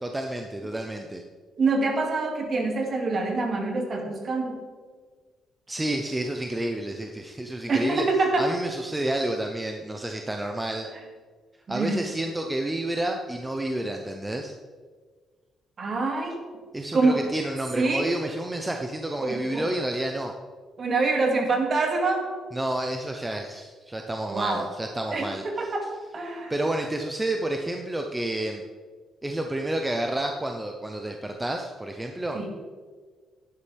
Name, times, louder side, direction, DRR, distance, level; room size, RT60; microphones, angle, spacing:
voice 1, 0.0-1.2 5.7-8.0 8.4-10.9 11.7-14.5 16.7-20.3 22.5-25.7 26.5-28.6 29.2-32.4, right 1 dB, 15° right, 3 dB, 0.8 m, -30 dB
voice 2, 1.6-4.6 7.7-8.5 11.7-12.0 15.8-16.4 16.9-17.2 17.8-18.1 19.2-19.7 20.8-22.3 24.3-24.7 25.1-26.5 32.3-32.6, right 3 dB, 45° right, 2 dB, 2.4 m, -25 dB
11.5 x 10.5 x 3.5 m, 1.5 s
cardioid pair, 90°, 0 cm